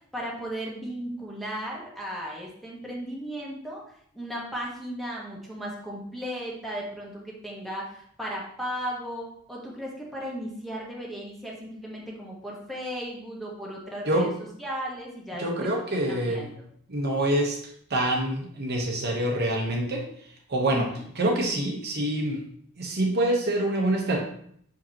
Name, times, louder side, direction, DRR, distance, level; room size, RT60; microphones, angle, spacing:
voice 1, 0.1-3.8 4.1-14.3 14.6-16.6 20.7-21.0, equal, ahead, -4 dB, 1.3 m, -36 dB
voice 2, 15.4-16.5 16.9-17.6 17.9-20.1 20.5-22.4 22.8-24.2, right 1 dB, 50° right, 0 dB, 1.0 m, -26 dB
6.5 x 5.1 x 2.9 m, 0.65 s
head